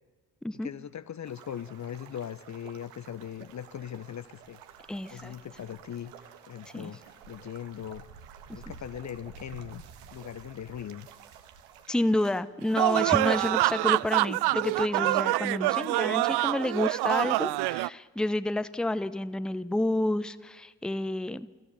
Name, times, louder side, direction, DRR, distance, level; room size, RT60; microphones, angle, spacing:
voice 1, 0.6-4.6 5.1-8.1 8.5-9.8 10.1-11.1, left 9 dB, 35° left, 15 dB, 0.8 m, -40 dB
sound 1, 1.3-12.4, right 7 dB, 75° right, 1.6 m, -51 dB
voice 2, 4.9-5.3 6.7-6.9 8.5-8.6 11.9-21.5, left 1 dB, ahead, 14 dB, 0.8 m, -29 dB
sound 2, 12.8-17.9, right 19 dB, 55° right, 0.5 m, -26 dB
25.5 x 15.0 x 7.0 m, 1.5 s
hypercardioid pair, 45°, 48 cm